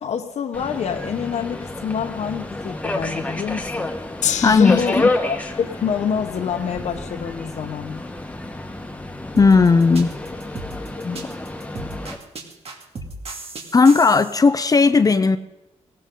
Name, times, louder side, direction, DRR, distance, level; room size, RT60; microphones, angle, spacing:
voice 1, 0.0-3.9 4.4-8.0, left 7 dB, 70° left, 4 dB, 1.0 m, -27 dB
Subway metro underground, 0.5-12.2, left 2 dB, 10° left, 1.4 m, -29 dB
Gong, 4.2-10.6 11.4-11.5, left 10 dB, 85° left, 0.7 m, -34 dB
voice 2, 4.4-5.1 9.4-10.2 11.0-11.3 13.7-15.4, left 4 dB, 30° left, 11 dB, 0.7 m, -15 dB
sound 1, 9.4-14.4, right 2 dB, 55° right, 2.7 m, -35 dB
18.5 x 18.0 x 3.9 m, 0.95 s
wide cardioid pair, 120°, 12 cm